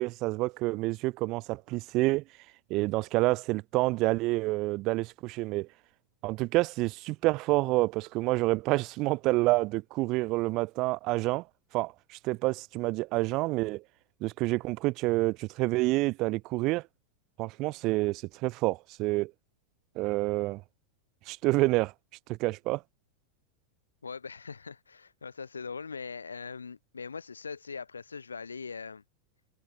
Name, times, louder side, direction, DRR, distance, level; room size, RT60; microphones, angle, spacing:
voice 1, 0.0-2.2 2.7-5.7 6.2-11.4 11.7-11.9 12.2-13.8 14.2-16.8 17.4-19.3 20.0-20.6 21.3-21.9 22.3-22.8, right 21 dB, 45° right, 2.1 m, -28 dB
voice 2, 24.0-29.0, left 5 dB, 90° left, 2.6 m, -41 dB
hypercardioid pair, 95°, 0 cm